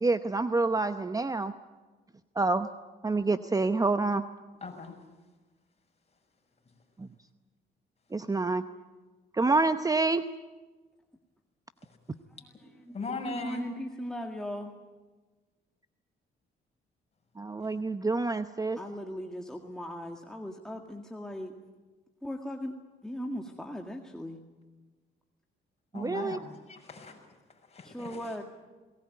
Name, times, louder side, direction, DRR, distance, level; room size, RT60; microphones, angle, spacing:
voice 1, 0.0-1.5 2.4-2.7 3.0-4.2 7.0-7.1 8.1-8.6 9.3-10.2 17.4-18.8 25.9-26.4, right 3 dB, 20° right, 10 dB, 0.8 m, -27 dB
voice 2, 4.6-4.9 12.9-13.7 25.9-26.4 26.7-27.2 27.7-28.1, left 3 dB, 30° left, 3 dB, 6.1 m, -37 dB
voice 3, 12.4-13.0 13.3-14.7 18.8-21.5 22.2-22.7 23.0-24.4 27.8-28.4, equal, 5° left, 2 dB, 1.9 m, -38 dB
21.5 x 19.5 x 9.4 m, 1.3 s
cardioid pair, 90°, 20 cm